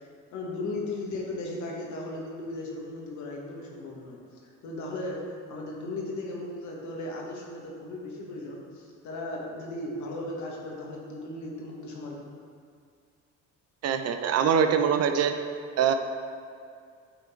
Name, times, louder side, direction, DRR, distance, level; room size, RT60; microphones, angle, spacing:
voice 1, 0.3-12.2, left 2 dB, 65° left, -2 dB, 1.6 m, -36 dB
voice 2, 13.8-15.4 15.8-15.9, right 7 dB, 50° right, 7 dB, 0.6 m, -23 dB
8.7 x 3.8 x 4.5 m, 2.3 s
supercardioid pair, 70°, 32 cm